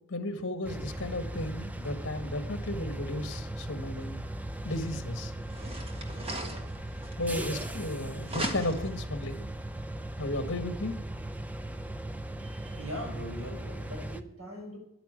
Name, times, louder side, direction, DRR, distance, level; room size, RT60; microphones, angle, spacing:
voice 1, 0.1-4.2 4.6-5.3 7.2-9.5 10.2-11.0, left 1 dB, 55° left, 8 dB, 1.7 m, -34 dB
sound 1, 0.6-14.2, right 1 dB, 5° right, 0.5 m, -38 dB
sound 2, 4.8-4.9 5.4-7.9 8.2-9.0, right 1 dB, 25° right, 1.6 m, -38 dB
voice 2, 12.4-14.8, equal, 75° right, 1 dB, 6.0 m, -41 dB
10.5 x 9.1 x 9.1 m, 0.77 s
head